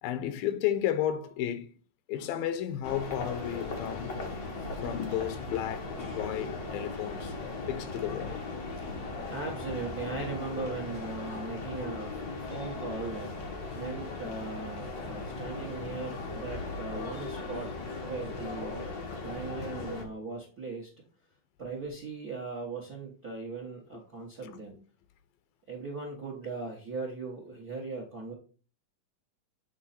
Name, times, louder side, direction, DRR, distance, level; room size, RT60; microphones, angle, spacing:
voice 1, 0.0-1.7 2.1-4.1 4.8-7.4 7.7-8.5 17.2-17.3 24.5-24.6, left 11 dB, 85° left, 2.4 m, -33 dB
sound 1, 2.8-20.0, left 3 dB, 45° left, 1.5 m, -38 dB
voice 2, 8.8-21.0 21.6-24.8 25.7-28.3, right 3 dB, 50° right, 1.1 m, -39 dB
8.7 x 3.9 x 4.2 m
omnidirectional pair, 4.1 m